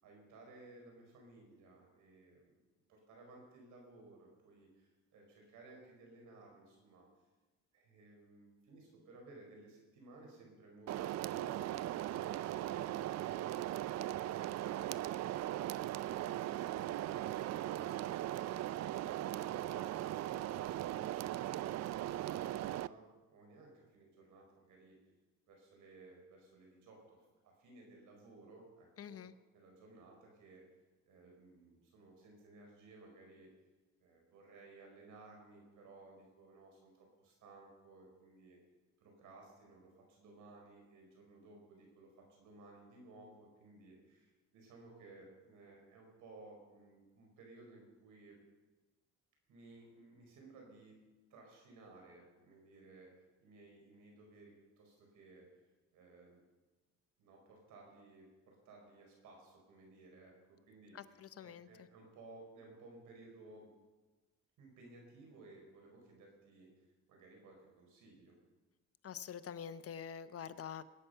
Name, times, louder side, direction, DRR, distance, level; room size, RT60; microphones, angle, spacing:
voice 1, 0.0-2.5 2.9-7.1 7.7-15.5 19.0-25.0 25.5-27.2 27.4-29.2 29.5-30.6 31.1-33.5 34.0-38.6 39.0-48.4 49.5-51.0 51.3-53.1 53.4-55.5 55.9-56.4 57.2-63.7 64.6-68.4, right 2 dB, 85° right, 0 dB, 5.1 m, -58 dB
sound 1, 10.9-22.9, right 13 dB, 60° right, 0.4 m, -39 dB
voice 2, 29.0-29.3 60.9-61.7 69.0-70.8, left 8 dB, 50° left, 13 dB, 0.8 m, -46 dB
20.5 x 9.4 x 5.6 m, 1.2 s
cardioid pair, 90°, 30 cm